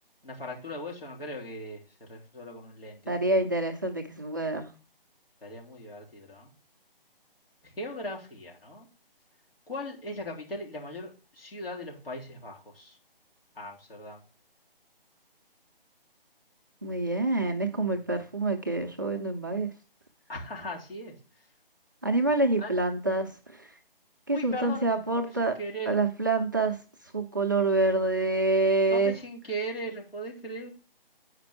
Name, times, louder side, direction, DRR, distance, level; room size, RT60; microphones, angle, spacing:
voice 1, 0.2-3.1 5.4-6.5 7.6-8.9 9.7-13.0 13.6-14.2 18.1-18.2 20.3-21.1 22.6-22.8 24.3-26.0 28.9-30.7, equal, 75° left, -3 dB, 3.6 m, -39 dB
voice 2, 3.1-4.7 16.8-19.7 22.0-23.7 24.3-25.5 25.9-26.8 27.1-29.1, right 2 dB, 20° right, 2 dB, 0.5 m, -26 dB
8.9 x 5.1 x 4.5 m, 0.35 s
figure-of-eight pair, 150°, 29 cm